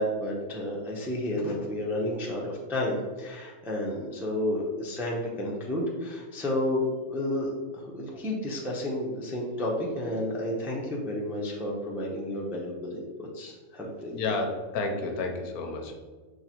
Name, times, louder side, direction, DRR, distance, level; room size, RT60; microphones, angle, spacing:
voice 1, 0.0-14.1, left 1 dB, 5° right, -3 dB, 0.3 m, -31 dB
voice 2, 14.1-16.0, left 3 dB, 85° left, 3 dB, 1.1 m, -31 dB
5.8 x 3.1 x 2.9 m, 1.4 s
omnidirectional pair, 1.6 m